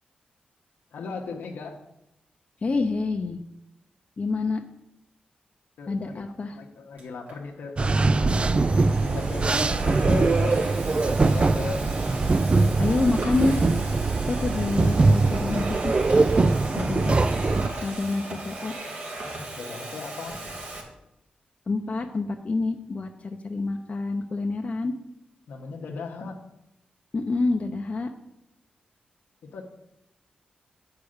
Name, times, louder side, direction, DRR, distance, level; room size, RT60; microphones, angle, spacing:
voice 1, 0.9-1.8 5.8-10.6 10.9-11.8 18.2-18.3 19.6-20.4 25.5-26.5 29.4-29.6, left 4 dB, 85° left, 1 dB, 1.0 m, -37 dB
voice 2, 2.6-3.4 4.2-4.6 5.9-6.6 12.8-13.6 14.3-16.0 16.7-17.2 17.8-18.8 21.7-24.9 27.1-28.1, left 3 dB, 45° left, 3 dB, 0.7 m, -27 dB
Domestic sounds home sounds, 7.0-7.4 8.1-20.8, right 2 dB, 65° right, 2.4 m, -37 dB
sound 1, 7.8-17.7, right 3 dB, 35° right, 0.4 m, -22 dB
8.3 x 4.8 x 6.4 m, 0.85 s
cardioid pair, 55°, 3 cm